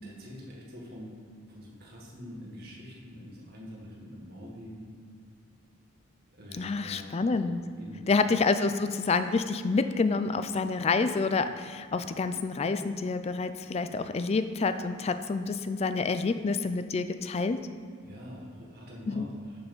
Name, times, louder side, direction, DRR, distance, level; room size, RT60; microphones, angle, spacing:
voice 1, 0.0-1.1 1.5-4.9 6.3-7.1 7.8-8.2 18.0-19.6, equal, 45° right, -3 dB, 1.6 m, -45 dB
voice 2, 6.6-7.6 8.1-17.6 19.1-19.3, left 4 dB, 30° left, 11 dB, 0.3 m, -28 dB
6.9 x 5.5 x 5.4 m, 2.2 s
head